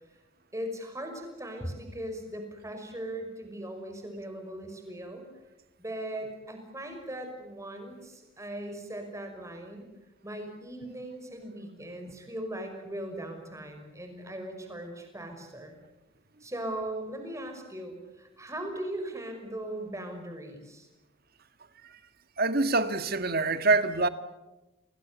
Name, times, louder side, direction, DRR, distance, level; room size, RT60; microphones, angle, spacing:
voice 1, 0.5-5.2 5.8-9.9 10.2-15.8 16.4-20.9, right 1 dB, 15° right, 5.7 m, -39 dB
voice 2, 22.4-24.1, right 3 dB, 45° right, 1.8 m, -25 dB
29.0 x 21.0 x 8.2 m
head